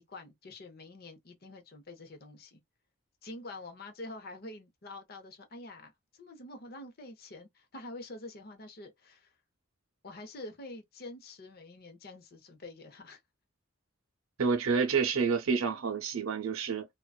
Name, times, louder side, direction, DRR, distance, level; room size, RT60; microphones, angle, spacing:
voice 1, 0.0-2.6 3.2-9.3 10.0-13.2, left 2 dB, 45° left, 0.6 m, -47 dB
voice 2, 14.4-16.9, right 5 dB, 80° right, 0.6 m, -28 dB
2.5 x 2.2 x 2.3 m
head